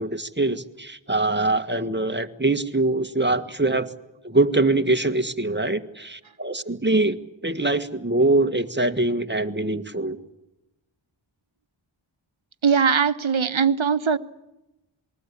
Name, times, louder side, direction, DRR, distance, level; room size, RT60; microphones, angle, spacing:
voice 1, 0.0-3.9 4.2-10.2, right 2 dB, 20° right, 1.8 m, -23 dB
voice 2, 12.6-14.2, right 6 dB, 75° right, 1.2 m, -20 dB
27.5 x 21.5 x 8.5 m
wide cardioid pair, 45°, 48 cm